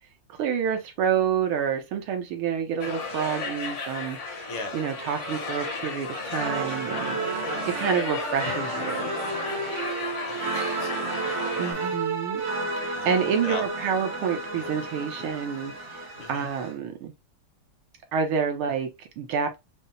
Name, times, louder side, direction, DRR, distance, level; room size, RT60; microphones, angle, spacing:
voice 1, 0.3-9.1 11.6-12.4 12.8-17.1 18.1-19.6, right 7 dB, 75° right, 1.6 m, -28 dB
sound 1, 2.8-11.7, left 3 dB, 45° left, 1.0 m, -34 dB
voice 2, 4.5-4.8 7.4-7.8 10.2-12.0 12.9-13.6 14.5-14.8 16.2-16.5, left 4 dB, 70° left, 1.7 m, -40 dB
sound 2, 6.3-16.7, right 3 dB, 50° right, 0.9 m, -32 dB
5.4 x 2.1 x 2.7 m
omnidirectional pair, 2.4 m